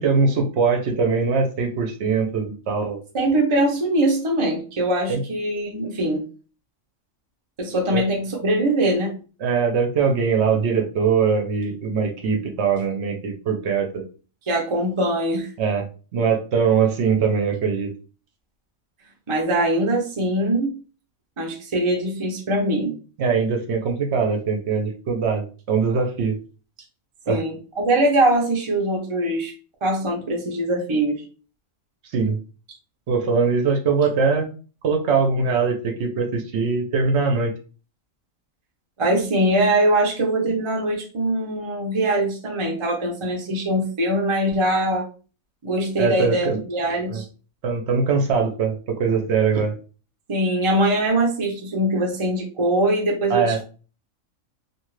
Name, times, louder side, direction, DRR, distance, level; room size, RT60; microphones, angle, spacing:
voice 1, 0.0-3.0 5.1-5.2 7.9-8.0 9.4-14.0 15.6-15.8 16.1-17.9 23.2-26.4 27.3-27.4 32.1-32.4 33.1-34.5 34.8-37.5 46.0-46.6 47.1-47.2 47.6-49.7 53.3-53.6, right 5 dB, 60° right, 3 dB, 0.8 m, -22 dB
voice 2, 3.1-6.2 7.6-9.2 14.5-15.5 19.3-20.7 21.4-22.9 27.3-29.5 29.8-31.2 39.0-45.1 45.6-47.2 50.3-53.6, right 1 dB, 35° right, 0 dB, 0.5 m, -22 dB
2.6 x 2.4 x 3.0 m, 0.36 s
omnidirectional pair, 1.4 m